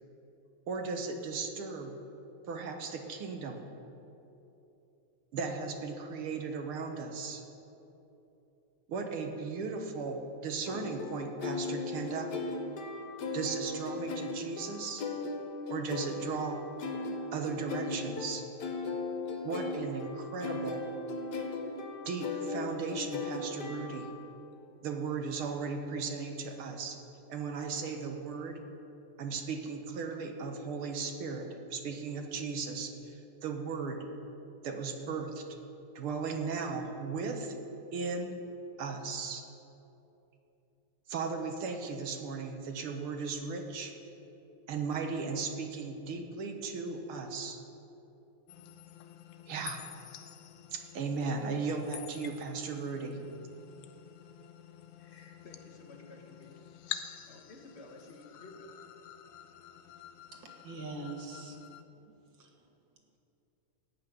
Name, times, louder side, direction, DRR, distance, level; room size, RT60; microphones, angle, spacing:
voice 1, 0.7-2.0 2.5-3.7 5.3-7.4 8.9-12.3 13.3-15.0 15.7-16.6 17.3-18.5 19.4-20.8 22.1-24.1 24.8-27.0 27.3-28.6 29.2-33.2 33.4-34.0 34.6-35.4 36.0-37.5 37.9-38.4 38.8-39.4 41.1-43.9 44.7-47.6 49.5-49.8 50.7-53.2, right 4 dB, 75° right, 4 dB, 2.0 m, -36 dB
sound 1, 10.7-24.3, left 3 dB, 55° left, 1.5 m, -38 dB
sound 2, 48.5-61.8, left 11 dB, 75° left, 1.4 m, -48 dB
voice 2, 54.9-56.6 56.9-58.8, left 2 dB, 35° left, 1 dB, 1.5 m, -53 dB
voice 3, 60.3-61.6 62.1-62.6, right 3 dB, 60° right, 2 dB, 2.1 m, -44 dB
16.0 x 5.7 x 9.3 m, 2.9 s
omnidirectional pair, 2.4 m